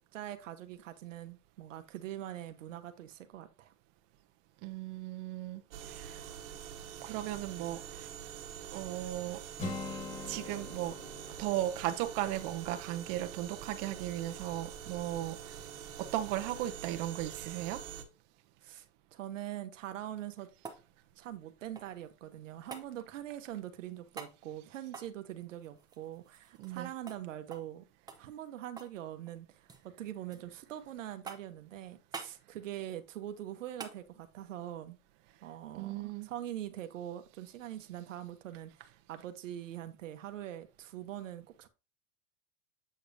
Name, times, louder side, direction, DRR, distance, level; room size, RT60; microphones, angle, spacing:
voice 1, 0.0-3.7 18.6-18.8 19.1-20.5 21.2-27.8 28.2-35.0 35.4-41.7, right 12 dB, 85° right, 1.1 m, -43 dB
voice 2, 4.6-6.4 7.0-8.1 8.7-9.4 9.9-10.0 10.2-11.0 11.4-15.5 16.0-17.8 26.6-26.9 35.7-36.3, right 13 dB, 45° right, 1.0 m, -36 dB
sound 1, 5.7-18.0, right 8 dB, 65° right, 1.5 m, -45 dB
Acoustic guitar, 9.6-13.5, left 3 dB, 20° left, 1.8 m, -44 dB
sound 2, 20.1-22.1 22.7-22.9 24.1-24.4 24.9-26.8 27.1-27.2 27.5-27.7 28.1-29.0 29.3-29.9 30.3-30.8 31.3-31.6 32.1-32.4 33.8-34.0 36.4-36.5, right 4 dB, 10° right, 0.9 m, -47 dB
7.8 x 5.0 x 2.6 m
supercardioid pair, 130°, 37 cm